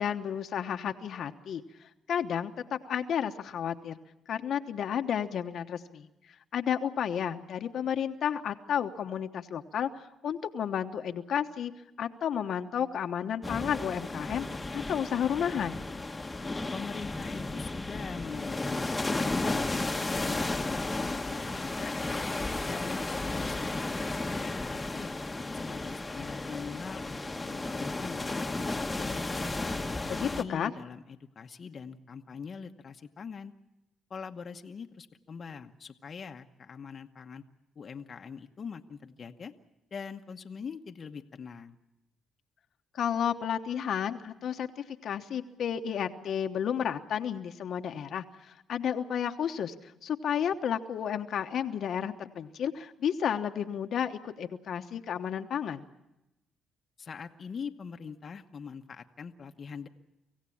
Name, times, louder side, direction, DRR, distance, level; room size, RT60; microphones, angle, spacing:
voice 1, 0.0-4.0 4.3-6.1 6.5-9.9 10.2-11.7 12.0-14.4 14.7-15.8 30.1-30.7 42.9-49.7 50.0-55.8, left 8 dB, 65° left, 6 dB, 1.1 m, -32 dB
atlantic storm, 13.4-30.4, left 2 dB, 15° left, 1.2 m, -33 dB
voice 2, 16.7-22.3 22.6-23.7 24.0-25.1 25.5-28.4 29.0-33.5 34.1-37.4 37.8-39.5 39.9-41.8 57.0-59.9, left 6 dB, 45° left, 5 dB, 1.0 m, -43 dB
25.5 x 16.0 x 8.6 m, 0.92 s
cardioid pair, 90°, 0 cm